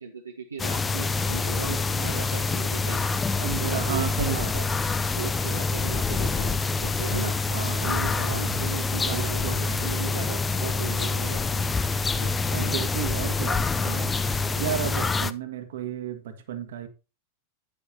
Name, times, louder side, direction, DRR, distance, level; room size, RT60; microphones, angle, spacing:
voice 1, 0.0-3.0 3.6-4.7 5.1-7.4 7.8-11.6 12.2-12.7, right 5 dB, 75° right, 1.3 m, -37 dB
sound 1, 0.6-15.3, left 4 dB, 15° left, 0.6 m, -26 dB
voice 2, 3.4-4.5 7.5-8.6 9.0-9.8 12.5-14.2 14.6-16.9, right 9 dB, 60° right, 1.8 m, -33 dB
10.5 x 9.6 x 2.9 m
figure-of-eight pair, 90°, 0 cm